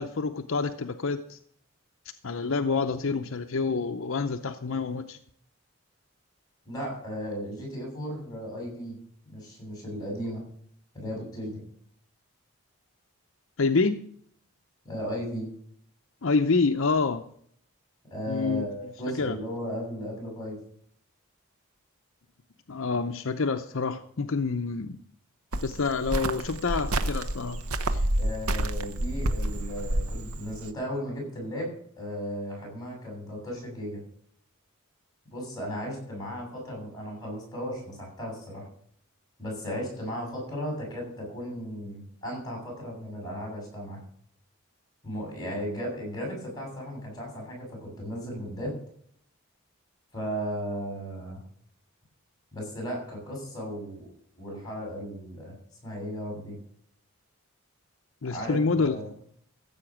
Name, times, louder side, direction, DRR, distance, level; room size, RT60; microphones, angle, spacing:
voice 1, 0.0-1.4 2.2-5.2 13.6-14.0 16.2-17.3 18.3-18.6 19.2-19.4 22.7-25.0 25.6-27.6 27.9-28.0 58.2-59.0, left 4 dB, 65° left, 8 dB, 0.6 m, -27 dB
voice 2, 6.7-9.0 9.3-10.4 10.9-11.6 14.8-15.5 18.1-20.6 28.2-34.0 35.3-38.7 39.4-44.0 45.0-48.8 50.1-51.4 52.5-54.1 54.4-55.6 55.8-56.5 58.2-59.1, equal, 20° left, 0 dB, 7.1 m, -35 dB
Cricket, 25.5-30.7, right 1 dB, 80° right, 0.9 m, -29 dB
15.0 x 7.8 x 6.0 m, 0.63 s
head